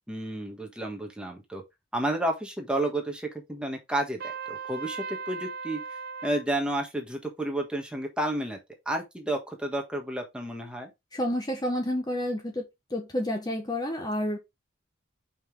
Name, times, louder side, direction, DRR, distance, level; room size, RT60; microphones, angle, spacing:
voice 1, 0.1-1.6 1.9-5.8 6.2-8.6 8.8-10.9, right 1 dB, 5° right, 1.4 m, -31 dB
Trumpet, 4.2-6.4, right 5 dB, 45° right, 0.5 m, -37 dB
voice 2, 11.1-12.6 12.9-14.4, left 1 dB, 20° left, 1.2 m, -29 dB
5.7 x 5.3 x 3.8 m
head